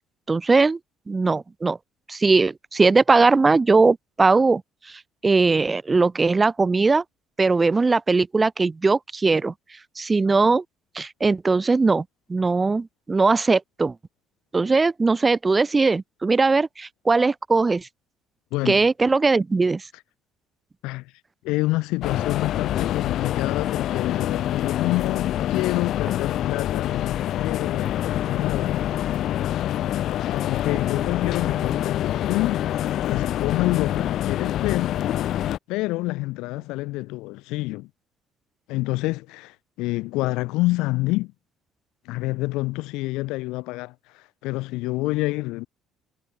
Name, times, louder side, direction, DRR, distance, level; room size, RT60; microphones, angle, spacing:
voice 1, 0.3-0.8 1.1-1.8 2.1-4.6 4.9-7.0 7.4-9.5 10.0-10.6 11.0-12.0 12.3-13.9 14.5-17.9 18.7-19.9, right 3 dB, 15° right, 0.4 m, -20 dB
voice 2, 18.5-18.9 20.8-21.1 21.4-28.8 30.2-32.6 33.1-35.0 35.7-37.9 38.7-41.3 42.0-45.7, left 21 dB, 85° left, 0.9 m, -28 dB
sound 1, 22.0-35.6, left 12 dB, 50° left, 2.2 m, -26 dB
cardioid pair, 165°, 0 cm